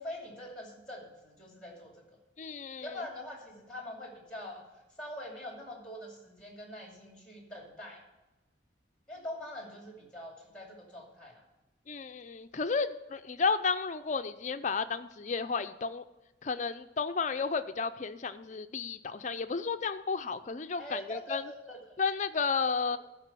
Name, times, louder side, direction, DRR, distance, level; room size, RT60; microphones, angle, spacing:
voice 1, 0.0-2.0 2.8-4.7 5.0-8.0 9.1-11.4 20.8-22.0 22.9-23.0, left 1 dB, 5° left, 0 dB, 2.5 m, -43 dB
voice 2, 2.4-3.0 11.9-16.0 16.4-21.4 22.0-23.0, left 5 dB, 40° left, 11 dB, 0.5 m, -32 dB
13.0 x 4.9 x 6.8 m, 0.98 s
head